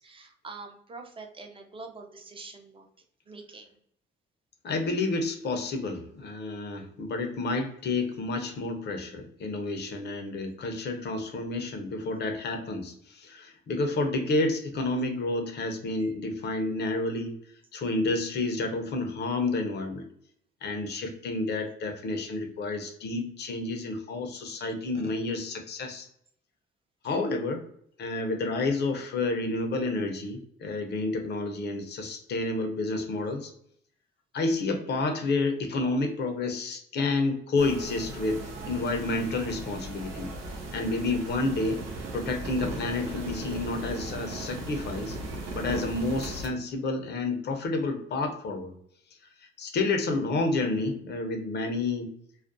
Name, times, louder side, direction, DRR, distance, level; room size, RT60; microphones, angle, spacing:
voice 1, 0.0-2.8 3.3-3.7 16.0-16.1 27.0-27.1 31.0-31.1, right 3 dB, 25° right, 3 dB, 0.5 m, -45 dB
voice 2, 4.6-17.4 17.7-20.1 20.6-26.1 27.0-27.6 28.0-33.5 34.3-40.3 40.7-41.8 42.1-45.2 45.5-48.7 49.6-52.1, left 2 dB, 60° left, 5 dB, 0.6 m, -30 dB
sound 1, 37.6-46.5, right 2 dB, 85° right, 0.7 m, -37 dB
2.4 x 2.1 x 2.5 m, 0.66 s
cardioid pair, 90°, 20 cm